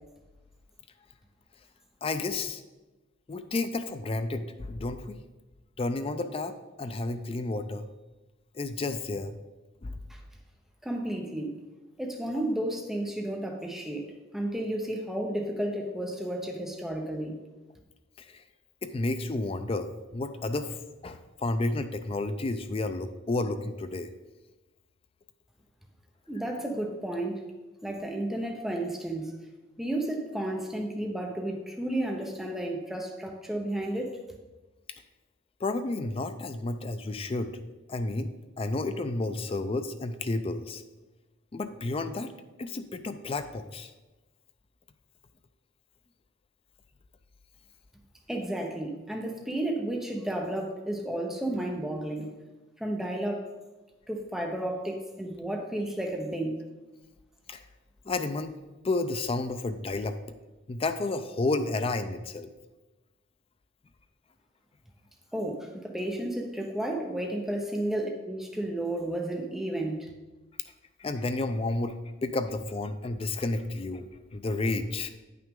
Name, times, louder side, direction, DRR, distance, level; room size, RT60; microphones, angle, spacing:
voice 1, 2.0-2.6 3.3-5.2 5.8-7.9 8.5-9.3 9.8-10.0 18.3-18.4 18.8-20.7 21.0-24.1 35.6-37.5 37.9-38.3 38.6-40.8 41.5-42.3 42.6-43.9 57.5-57.6 58.1-58.5 58.8-60.2 60.7-62.5 71.0-72.0 72.2-74.0 74.3-75.1, left 2 dB, 30° left, 9 dB, 0.4 m, -31 dB
voice 2, 10.8-11.6 12.0-17.4 26.3-27.5 27.8-29.4 29.8-34.2 48.3-52.4 52.8-53.4 54.1-56.5 65.3-70.1, right 1 dB, ahead, 0 dB, 0.7 m, -32 dB
9.3 x 5.8 x 3.7 m, 1.1 s
head